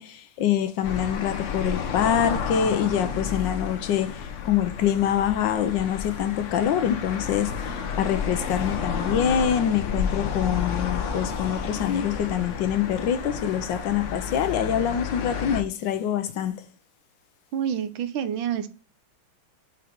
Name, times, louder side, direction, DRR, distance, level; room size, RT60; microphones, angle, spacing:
voice 1, 0.0-16.6, left 9 dB, 75° left, 1.2 m, -25 dB
sound 1, 0.8-15.6, left 6 dB, 60° left, 0.8 m, -31 dB
voice 2, 17.5-18.7, right 9 dB, 75° right, 1.5 m, -28 dB
5.0 x 4.5 x 5.1 m
omnidirectional pair, 2.2 m